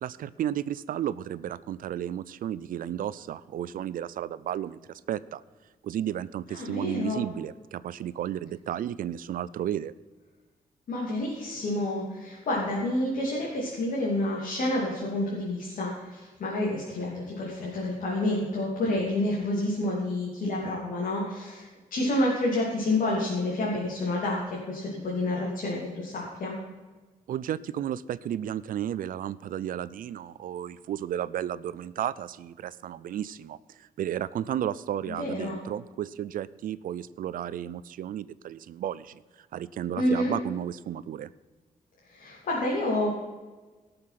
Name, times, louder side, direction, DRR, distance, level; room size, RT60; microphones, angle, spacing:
voice 1, 0.0-5.4 5.8-9.9 27.3-39.2 39.5-41.3, right 10 dB, 80° right, 17 dB, 0.5 m, -33 dB
voice 2, 6.5-7.2 10.9-26.5 35.2-35.6 40.0-40.3 42.0-43.1, left 1 dB, 70° left, -5 dB, 3.0 m, -29 dB
17.5 x 6.8 x 5.8 m, 1.3 s
wide cardioid pair, 155°, 14 cm